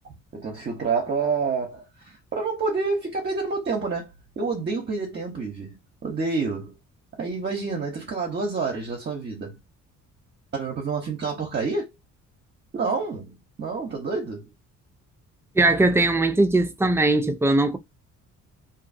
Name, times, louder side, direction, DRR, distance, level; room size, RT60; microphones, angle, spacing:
voice 1, 0.0-6.8 7.2-9.6 10.5-11.9 12.7-14.5, right 4 dB, 35° right, 0.9 m, -28 dB
voice 2, 15.6-17.8, right 2 dB, 10° right, 0.4 m, -20 dB
2.6 x 2.5 x 2.5 m
cardioid pair, 105°, 31 cm